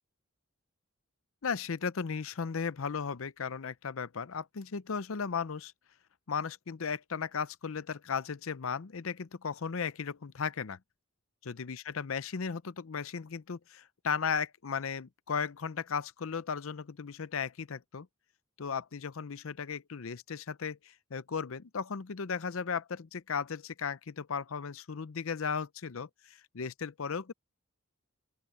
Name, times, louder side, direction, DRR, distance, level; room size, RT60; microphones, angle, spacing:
voice 1, 1.4-5.7 6.3-10.8 11.4-18.1 18.6-27.3, left 6 dB, 65° left, 0.6 m, -36 dB
open air
head